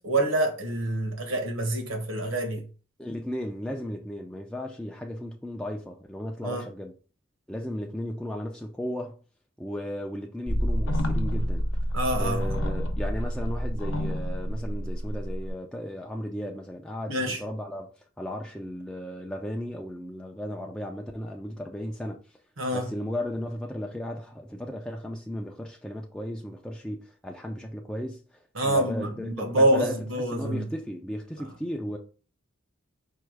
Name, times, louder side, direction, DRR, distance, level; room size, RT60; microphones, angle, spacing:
voice 1, 0.0-2.6 6.4-6.6 11.9-12.4 17.1-17.4 22.6-22.9 28.5-30.7, right 1 dB, 80° right, 1.3 m, -26 dB
voice 2, 3.0-6.9 7.5-9.2 9.6-11.7 12.2-17.9 18.2-22.2 22.7-28.2 28.6-32.0, equal, 5° left, 0.4 m, -35 dB
sound 1, 10.5-15.5, equal, 70° left, 0.8 m, -28 dB
4.6 x 2.3 x 4.7 m
head